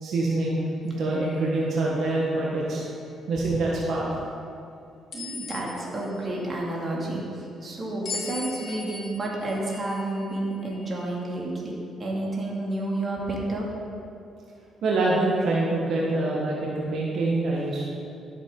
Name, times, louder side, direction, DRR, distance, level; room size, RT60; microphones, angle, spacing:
voice 1, 0.0-2.8 3.3-4.0 14.8-17.8, right 2 dB, 70° right, -4 dB, 1.4 m, -25 dB
sound 1, 0.8-1.4 2.0-2.2 5.1-6.2 8.0-11.1, left 3 dB, 60° left, 2.3 m, -39 dB
voice 2, 5.1-11.7 12.0-13.6, right 2 dB, 35° right, -3 dB, 2.4 m, -30 dB
12.5 x 7.5 x 3.9 m, 2.6 s
cardioid pair, 90°, 0 cm